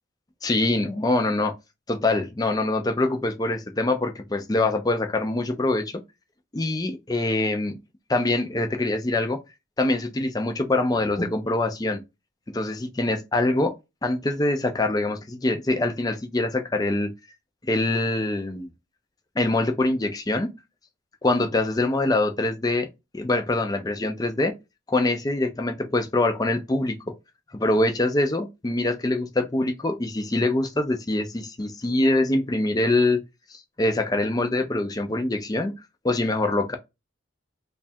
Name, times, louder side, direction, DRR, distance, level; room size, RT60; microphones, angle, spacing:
voice 1, 0.4-1.5 1.9-6.0 6.5-7.7 8.1-9.4 9.8-12.0 12.5-13.7 14.0-17.1 17.7-18.7 19.4-20.5 21.2-22.9 23.1-24.6 24.9-27.1 27.5-33.2 33.5-35.7 36.0-36.8, left 2 dB, 20° left, 0.4 m, -24 dB
3.2 x 2.3 x 4.2 m
head